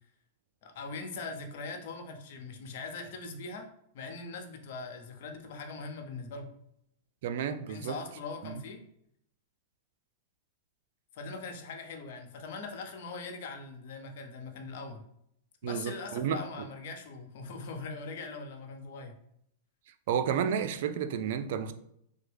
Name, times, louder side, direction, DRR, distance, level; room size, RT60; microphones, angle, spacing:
voice 1, 0.6-3.7 3.9-6.5 7.7-8.8 11.1-15.0 15.6-19.2, left 3 dB, 60° left, 0.7 m, -41 dB
voice 2, 7.2-8.0 8.4-8.5 15.6-16.4 20.1-21.7, right 8 dB, 65° right, 0.3 m, -31 dB
3.4 x 2.1 x 3.3 m
hypercardioid pair, 130°, 0 cm